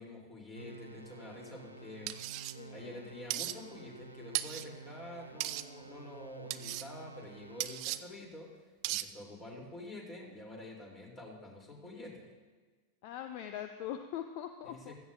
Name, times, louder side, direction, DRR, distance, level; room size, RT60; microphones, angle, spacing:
voice 1, 0.0-2.2 2.4-12.3 14.6-14.9, left 2 dB, 20° left, -1 dB, 3.2 m, -48 dB
sound 1, 0.6-8.1, right 5 dB, 85° right, 0.8 m, -51 dB
sound 2, 2.1-2.5 3.3-3.6 4.3-4.7 5.4-5.7 6.5-6.9 7.6-8.0 8.8-9.1, right 17 dB, 40° right, 0.4 m, -36 dB
voice 2, 2.5-3.0 13.0-14.9, left 10 dB, 45° left, 8 dB, 0.6 m, -42 dB
16.5 x 13.5 x 2.6 m, 1.3 s
figure-of-eight pair, 90°, 0 cm